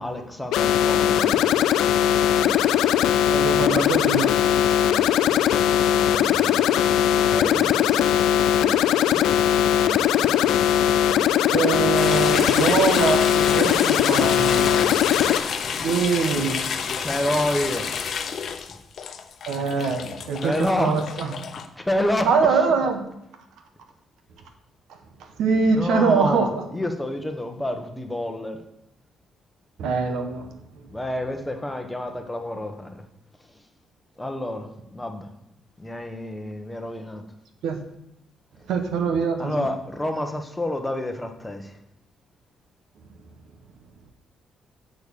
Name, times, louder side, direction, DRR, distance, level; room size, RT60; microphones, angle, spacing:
voice 1, 0.0-1.4 5.9-8.5 9.1-9.5 17.0-17.9 18.7-18.8 19.7-19.9 20.3-21.1 21.8-22.7 25.7-28.6 30.9-33.0 33.5-33.6 34.2-35.3 35.8-37.2 39.4-41.8, left 1 dB, 10° left, 4 dB, 1.3 m, -29 dB
sound 1, 0.5-15.4, left 10 dB, 85° left, 0.4 m, -20 dB
voice 2, 3.1-4.5 7.5-7.7 11.5-14.8 15.7-16.6 19.5-21.5 22.3-23.0 25.4-26.6 29.8-30.5 37.6-37.8 38.7-39.7, right 5 dB, 80° right, 6 dB, 1.3 m, -23 dB
sound 2, 11.9-21.7, left 6 dB, 60° left, 0.9 m, -30 dB
6.7 x 6.2 x 7.0 m, 0.81 s
cardioid pair, 90°, 0 cm